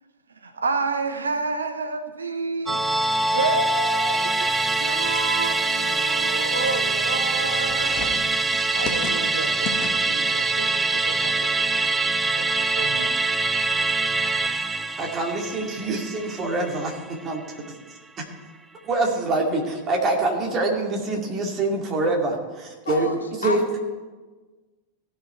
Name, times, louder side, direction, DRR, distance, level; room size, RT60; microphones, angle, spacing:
voice 1, 0.4-8.4 8.7-12.0 12.3-13.2, right 3 dB, 75° right, 9 dB, 0.7 m, -30 dB
Musical instrument, 2.7-17.3 17.7-17.8, right 3 dB, 10° right, 0.4 m, -24 dB
sound 1, 4.4-10.3, left 5 dB, 40° left, 1.3 m, -38 dB
voice 2, 15.0-17.0 17.2-17.4 18.9-23.1 23.4-23.6, right 2 dB, 30° right, 0 dB, 2.2 m, -25 dB
voice 3, 22.8-23.8, left 4 dB, 75° left, 4 dB, 1.3 m, -31 dB
16.5 x 5.6 x 4.4 m, 1.3 s
figure-of-eight pair, 90°, 0 cm